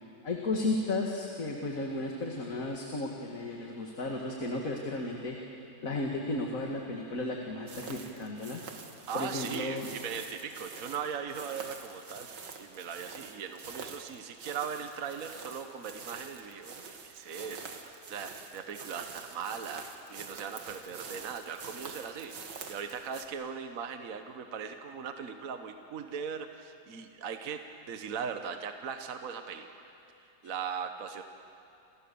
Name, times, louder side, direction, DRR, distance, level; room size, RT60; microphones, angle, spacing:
voice 1, 0.2-5.4 5.8-8.6 9.1-9.9, left 2 dB, 50° left, 0 dB, 2.5 m, -34 dB
sound 1, 7.7-23.3, right 5 dB, 85° right, 2.5 m, -46 dB
voice 2, 9.1-12.3 12.6-27.6 27.9-29.7 30.4-31.2, right 6 dB, 55° right, 6 dB, 1.5 m, -39 dB
28.5 x 28.5 x 7.1 m, 2.7 s
omnidirectional pair, 1.9 m